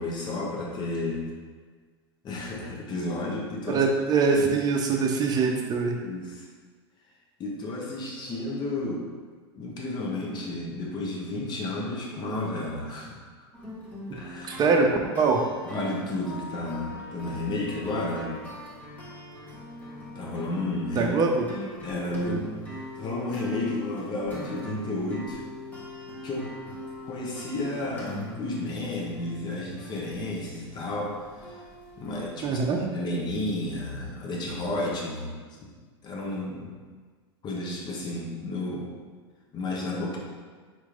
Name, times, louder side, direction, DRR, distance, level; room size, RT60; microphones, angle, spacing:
voice 1, 0.0-1.3 2.2-3.9 4.3-4.5 6.0-6.5 7.4-9.1 9.6-13.2 14.1-14.6 15.6-18.3 20.1-21.2 21.5-22.6 23.0-25.4 26.2-26.5 27.1-31.6 32.0-35.3 35.6-35.7 36.0-36.8 37.4-39.0 39.5-40.2, left 2 dB, 30° left, -2 dB, 1.1 m, -32 dB
voice 2, 3.7-5.9 14.5-14.9 15.2-15.4 20.9-21.5 32.4-32.8, right 4 dB, 30° right, 1 dB, 0.8 m, -23 dB
sound 1, 13.5-32.4, left 1 dB, 10° left, 1.3 m, -41 dB
4.4 x 3.1 x 3.8 m, 1.5 s
hypercardioid pair, 95°, 14 cm